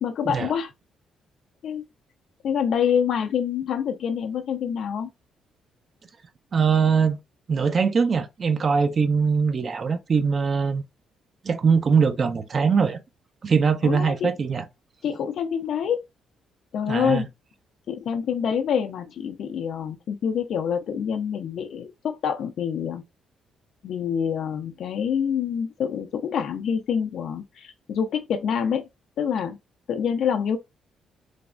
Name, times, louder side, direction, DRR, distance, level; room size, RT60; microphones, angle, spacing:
voice 1, 0.0-0.7 1.6-1.8 2.4-5.1 13.8-14.3 15.0-16.0 16.7-17.3 17.9-23.0 23.8-28.8 29.2-29.6 29.9-30.6, left 7 dB, 70° left, 0.4 m, -26 dB
voice 2, 6.5-7.2 7.5-10.8 11.4-13.0 13.4-14.6 16.9-17.3, right 5 dB, 45° right, 0.4 m, -22 dB
3.2 x 2.0 x 2.4 m
cardioid pair, 90°, 0 cm